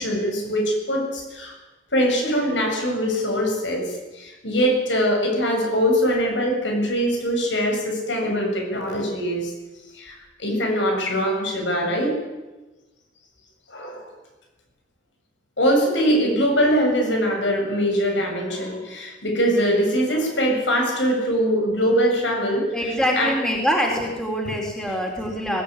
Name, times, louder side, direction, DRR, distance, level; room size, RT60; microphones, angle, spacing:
voice 1, 0.0-1.5 1.9-9.5 9.9-12.2 13.7-14.1 15.6-22.8 23.1-23.4 24.4-24.5, equal, 85° left, 2 dB, 7.3 m, -22 dB
voice 2, 22.7-25.6, equal, 5° left, 0 dB, 3.7 m, -24 dB
20.5 x 19.5 x 9.7 m, 1.2 s
head